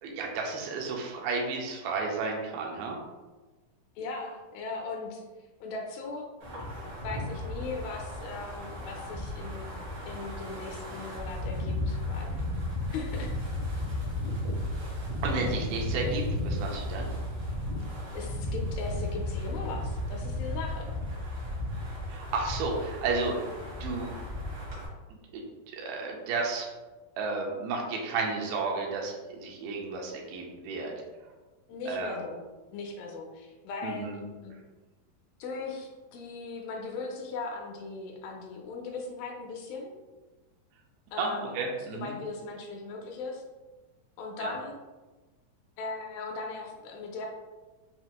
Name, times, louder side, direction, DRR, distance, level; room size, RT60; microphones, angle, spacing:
voice 1, 0.0-3.0 15.2-17.1 22.1-23.5 23.8-24.1 25.3-25.4 25.7-26.7 27.2-30.9 31.9-32.2 33.8-34.2 41.2-42.1 44.4-44.6, right 4 dB, 80° right, 0 dB, 2.5 m, -32 dB
voice 2, 4.0-5.2 5.6-6.3 7.0-9.7 10.1-12.4 12.8-13.3 18.1-20.9 31.7-32.4 32.7-34.1 34.4-34.6 35.4-40.0 41.1-41.6 41.9-43.4 44.2-44.8 45.8-47.3, left 3 dB, 80° left, 1 dB, 2.3 m, -38 dB
Wind, 6.4-24.9, left 1 dB, 65° right, 1.0 m, -34 dB
6.2 x 2.5 x 2.9 m, 1.2 s
omnidirectional pair, 4.3 m